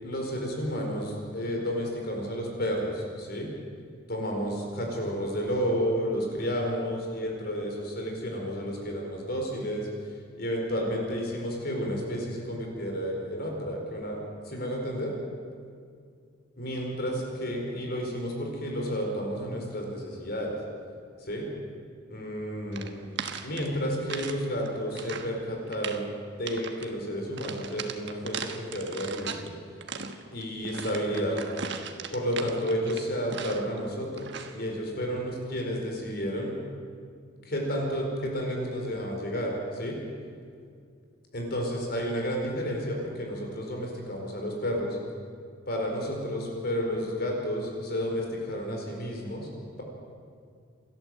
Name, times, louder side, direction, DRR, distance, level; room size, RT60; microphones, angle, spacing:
voice 1, 0.0-3.5 4.1-9.9 10.4-15.1 16.6-20.6 21.2-21.5 22.1-23.0 23.4-26.1 26.4-29.5 30.3-31.4 32.1-36.5 37.5-40.0 41.3-45.0 45.7-49.5, equal, 50° left, 0 dB, 4.6 m, -31 dB
sound 1, 22.7-24.4 24.7-25.3 25.7-26.1 26.4-26.9 27.4-29.5 29.8-33.8 34.2-34.6, right 6 dB, 60° right, 1.3 m, -38 dB
28.5 x 12.5 x 7.8 m, 2.2 s
head